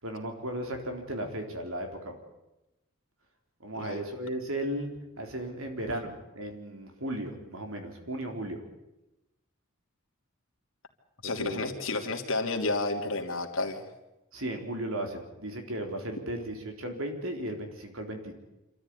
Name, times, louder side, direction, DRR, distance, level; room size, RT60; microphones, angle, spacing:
voice 1, 0.0-2.2 3.6-4.9 5.2-8.6 11.2-11.6 14.3-18.3, right 1 dB, 70° right, 4 dB, 4.0 m, -35 dB
voice 2, 11.2-13.8, left 3 dB, 70° left, 3 dB, 3.0 m, -31 dB
27.0 x 13.5 x 9.9 m, 0.97 s
head